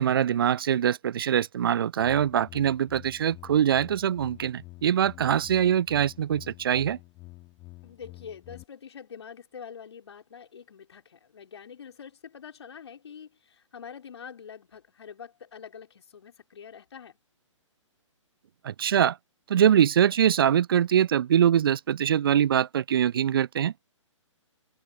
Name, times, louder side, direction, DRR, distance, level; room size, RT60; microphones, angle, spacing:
voice 1, 0.0-7.0 18.6-19.2 19.5-23.7, right 9 dB, 45° right, 0.5 m, -23 dB
sound 1, 2.0-8.7, left 21 dB, 25° left, 4.1 m, -48 dB
voice 2, 7.8-17.2, left 7 dB, 55° left, 5.1 m, -45 dB
figure-of-eight pair, 130°, 17 cm